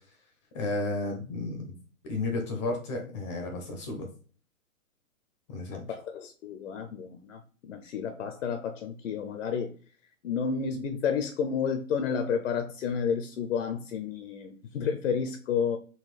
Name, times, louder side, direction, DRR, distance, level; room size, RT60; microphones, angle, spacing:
voice 1, 0.5-1.7 2.0-4.1 5.5-5.9, left 2 dB, 20° left, 0.6 m, -32 dB
voice 2, 5.7-7.4 7.7-9.7 10.2-15.8, left 6 dB, 60° left, 0.7 m, -31 dB
3.9 x 2.2 x 4.1 m
hypercardioid pair, 130°, 43 cm